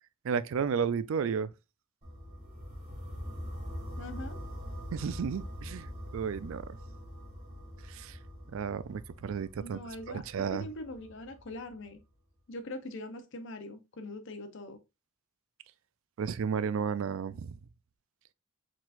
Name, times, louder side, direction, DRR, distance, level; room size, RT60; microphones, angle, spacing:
voice 1, 0.2-1.5 4.9-6.8 7.9-8.2 8.5-9.8 10.1-10.6 16.2-17.6, right 6 dB, 65° right, 0.4 m, -33 dB
sound 1, 2.0-11.9, equal, 45° right, 2.2 m, -43 dB
voice 2, 4.0-4.4 9.6-10.2 10.5-12.0 12.5-14.8, left 1 dB, 60° left, 0.8 m, -42 dB
4.5 x 4.0 x 2.4 m
head